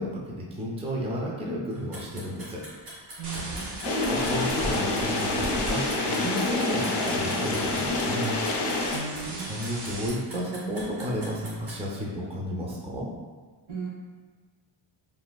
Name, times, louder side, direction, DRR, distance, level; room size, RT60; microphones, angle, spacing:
voice 1, 0.0-2.6 3.8-8.4 8.8-9.2 9.5-13.1, equal, 15° right, -3 dB, 0.4 m, -32 dB
sound 1, 1.7-11.8, right 1 dB, 85° right, 1.4 m, -43 dB
voice 2, 3.1-3.7 8.9-9.7 13.7-13.9, right 5 dB, 70° right, -5 dB, 1.0 m, -36 dB
sound 2, 3.2-10.1, right 1 dB, 55° right, 0.7 m, -37 dB
sound 3, 3.8-9.0, left 2 dB, 55° left, 0.5 m, -27 dB
3.1 x 2.3 x 2.2 m, 1.5 s
cardioid pair, 115°, 50 cm